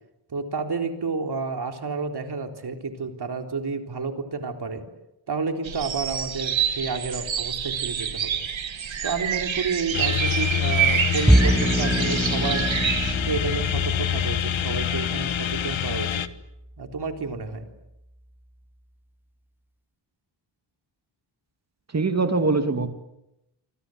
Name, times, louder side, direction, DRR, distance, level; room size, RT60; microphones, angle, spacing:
voice 1, 0.3-4.9 5.3-8.4 9.0-12.7 13.3-16.2 16.8-17.7, right 4 dB, 55° right, 5 dB, 3.9 m, -30 dB
sound 1, 5.6-13.1, right 8 dB, 75° right, 2.2 m, -27 dB
sound 2, 9.9-16.3, left 10 dB, 80° left, 1.4 m, -26 dB
Bowed string instrument, 11.3-17.7, right 1 dB, 5° right, 1.2 m, -26 dB
voice 2, 21.9-22.9, right 3 dB, 35° right, 7 dB, 2.8 m, -22 dB
28.5 x 25.0 x 8.0 m, 0.89 s
wide cardioid pair, 125°, 47 cm